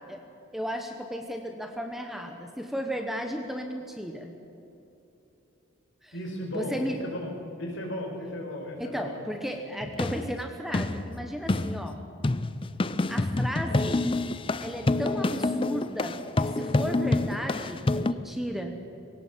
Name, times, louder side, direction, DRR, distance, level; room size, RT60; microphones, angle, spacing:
voice 1, 0.5-4.3 6.0-6.2 6.5-7.0 8.8-12.0 13.1-14.1 14.6-18.8, equal, ahead, 4 dB, 1.0 m, -34 dB
voice 2, 6.1-9.2, left 1 dB, 65° left, 1 dB, 4.9 m, -35 dB
sound 1, 9.8-18.1, left 2 dB, 25° left, 0.5 m, -28 dB
20.0 x 18.0 x 7.3 m, 2.9 s
head